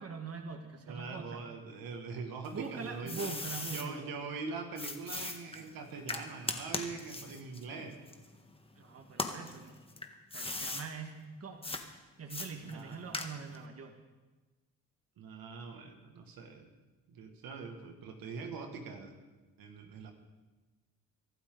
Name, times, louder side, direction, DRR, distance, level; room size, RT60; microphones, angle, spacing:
voice 1, 0.0-1.4 2.5-4.1 7.7-7.9 8.8-9.8 10.3-11.8 12.2-14.0, right 5 dB, 45° right, 4 dB, 1.7 m, -43 dB
voice 2, 0.9-3.4 3.7-8.0 12.7-13.1 15.2-16.7 17.1-19.2 19.6-20.1, right 4 dB, 80° right, 4 dB, 2.1 m, -43 dB
sound 1, 2.4-3.9 4.8-8.7 9.1-10.9 11.6-11.8 12.3-13.6, left 2 dB, 15° left, 1.6 m, -39 dB
23.5 x 12.0 x 4.0 m, 1.2 s
cardioid pair, 75°, 34 cm